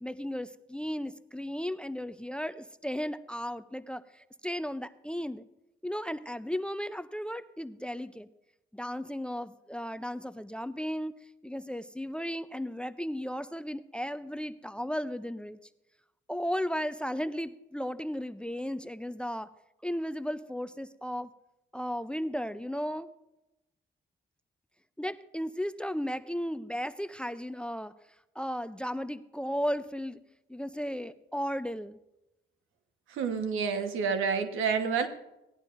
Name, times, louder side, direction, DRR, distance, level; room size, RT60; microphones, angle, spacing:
voice 1, 0.0-5.5 5.8-8.3 8.7-11.1 11.4-15.6 16.3-19.5 19.8-21.3 21.7-23.1 25.0-27.9 28.4-30.2 30.5-32.0, equal, 5° left, 14 dB, 0.5 m, -35 dB
voice 2, 33.2-35.1, right 5 dB, 85° right, 7 dB, 1.3 m, -28 dB
18.0 x 11.0 x 2.6 m, 0.92 s
cardioid pair, 90°, 20 cm